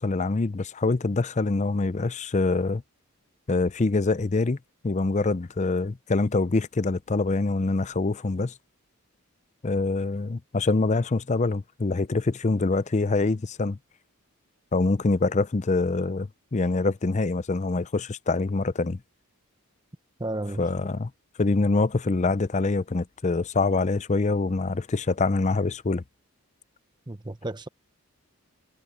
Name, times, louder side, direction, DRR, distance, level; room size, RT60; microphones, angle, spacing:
voice 1, 0.0-2.8 3.5-4.6 4.8-8.5 9.6-13.8 14.7-19.0 20.6-21.1 21.4-26.0, left 3 dB, 30° left, 0.5 m, -25 dB
voice 2, 20.2-20.6 27.1-27.7, right 1 dB, 20° right, 0.9 m, -32 dB
head